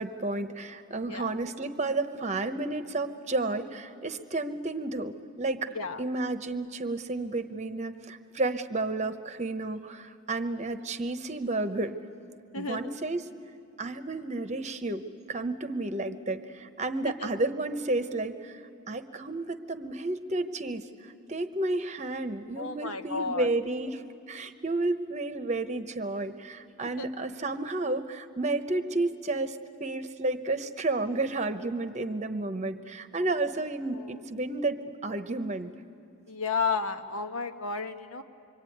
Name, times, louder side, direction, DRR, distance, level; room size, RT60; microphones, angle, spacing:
voice 1, 0.0-12.0 12.5-13.2 13.8-35.7, right 2 dB, 30° right, 9 dB, 0.9 m, -32 dB
voice 2, 22.6-23.5 27.0-27.1 33.9-34.2 36.3-38.2, left 4 dB, 80° left, 7 dB, 1.2 m, -32 dB
25.5 x 23.5 x 9.4 m, 2.5 s
head